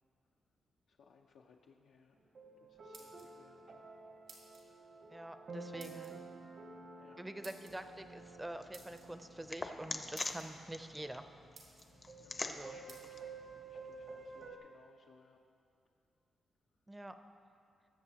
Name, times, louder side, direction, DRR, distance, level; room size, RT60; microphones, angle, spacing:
voice 1, 0.9-2.2 2.6-3.9 4.7-4.9 5.6-5.9 7.0-7.2 12.2-13.4 13.6-15.4, left 5 dB, 80° left, 1 dB, 0.6 m, -65 dB
sound 1, 2.3-14.6, right 4 dB, 55° right, 0.9 m, -52 dB
sound 2, 2.7-3.6 4.3-4.7 5.8-6.1 7.4-7.7 8.7-9.1 9.8-9.9 10.1-10.5 11.1-11.2 11.5-11.9 12.9-13.0, right 4 dB, 85° right, 2.2 m, -56 dB
voice 2, 5.1-6.2 7.2-11.3 12.5-12.8 16.9-17.2, right 1 dB, 10° right, 9 dB, 0.5 m, -46 dB
sound 3, 7.7-14.5, left 3 dB, 35° left, 0.6 m, -47 dB
20.5 x 6.9 x 2.9 m, 2.5 s
cardioid pair, 105°, 0 cm